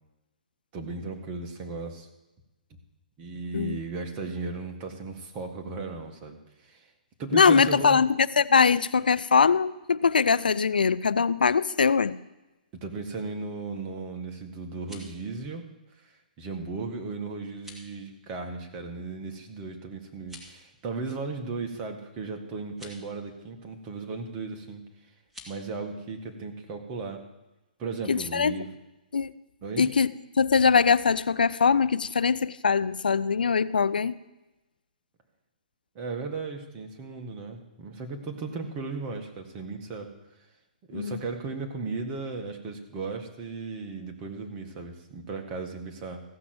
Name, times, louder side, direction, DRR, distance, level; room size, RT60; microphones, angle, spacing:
voice 1, 0.7-2.1 3.2-6.4 6.6-6.9 7.2-8.0 12.7-15.6 16.0-24.8 25.5-27.2 27.8-28.7 29.6-29.9 36.0-40.1 40.9-46.2, right 4 dB, 30° right, 4 dB, 1.8 m, -36 dB
voice 2, 7.3-12.2 28.1-28.6 29.1-29.3 29.8-30.1 30.4-34.2 40.9-41.2, left 5 dB, 85° left, 17 dB, 0.5 m, -22 dB
sound 1, 14.6-15.2 17.5-17.9 20.2-20.6 22.6-23.0 25.2-25.5, left 1 dB, 5° right, 2.4 m, -47 dB
15.5 x 6.1 x 7.9 m, 1.0 s
hypercardioid pair, 140°, 5 cm